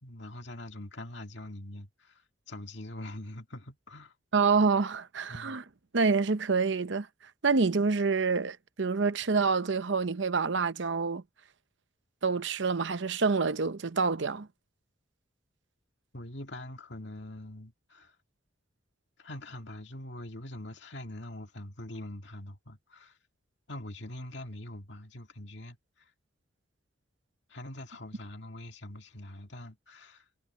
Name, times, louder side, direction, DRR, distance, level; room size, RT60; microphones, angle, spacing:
voice 1, 0.0-4.1 5.3-5.6 16.1-18.1 19.2-23.2 23.7-25.8 27.5-30.2, left 1 dB, 60° left, 2.1 m, -43 dB
voice 2, 4.3-5.6 5.9-7.1 7.4-11.2 12.2-14.5, right 4 dB, 65° right, 0.7 m, -27 dB
head